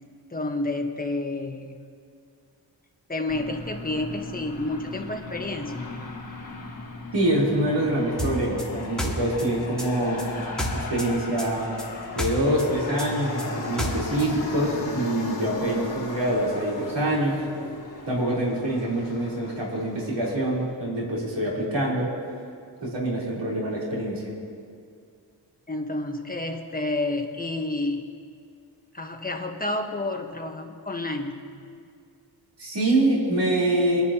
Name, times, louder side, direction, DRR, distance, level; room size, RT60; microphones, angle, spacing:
voice 1, 0.3-1.8 3.1-5.9 25.7-28.1 28.9-31.5, left 2 dB, 20° left, 3 dB, 1.3 m, -30 dB
Aircraft, 3.3-20.7, left 2 dB, 50° left, 3.3 m, -36 dB
voice 2, 7.1-10.3 10.7-11.7 12.1-17.4 18.1-22.1 22.8-24.3 32.6-34.0, right 1 dB, 70° right, -5 dB, 4.1 m, -25 dB
sound 1, 8.2-11.1 11.4-14.3, equal, ahead, 2.2 m, -31 dB
24.0 x 10.5 x 3.0 m, 2.3 s
wide cardioid pair, 85°, 45 cm